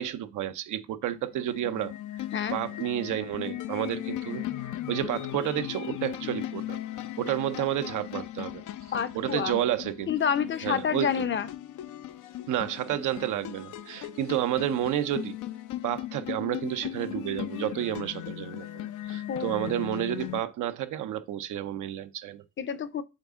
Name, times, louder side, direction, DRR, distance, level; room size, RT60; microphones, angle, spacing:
voice 1, 0.0-1.9 2.5-4.5 4.9-6.8 7.2-8.6 9.1-10.1 10.6-11.2 12.5-15.4 15.8-22.4, right 12 dB, 80° right, 0.7 m, -30 dB
sound 1, 1.1-20.4, left 13 dB, 80° left, 0.6 m, -37 dB
voice 2, 8.9-9.5 10.1-11.5 19.3-19.5 22.6-23.0, left 7 dB, 40° left, 0.6 m, -28 dB
7.5 x 4.1 x 3.6 m
cardioid pair, 90°, 30 cm